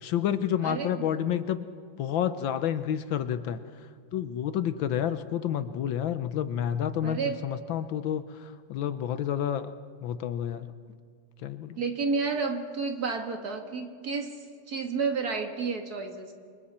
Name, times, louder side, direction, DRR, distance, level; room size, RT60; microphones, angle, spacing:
voice 1, 0.0-1.7 2.0-3.6 4.1-9.7 10.0-10.7 11.4-11.8, left 9 dB, 70° left, 11 dB, 1.4 m, -29 dB
voice 2, 0.6-1.1 7.0-7.4 11.8-16.3, right 4 dB, 45° right, 4 dB, 2.2 m, -31 dB
29.5 x 25.5 x 4.3 m, 2.1 s
omnidirectional pair, 2.3 m